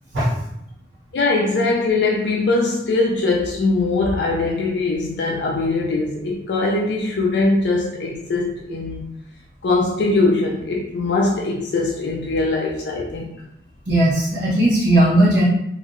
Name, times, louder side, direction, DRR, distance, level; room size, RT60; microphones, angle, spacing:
voice 1, 1.1-9.0 9.6-13.3, left 3 dB, 70° left, 0.4 m, -21 dB
voice 2, 13.9-15.4, right 1 dB, 65° right, 0.8 m, -16 dB
3.0 x 2.5 x 2.5 m
head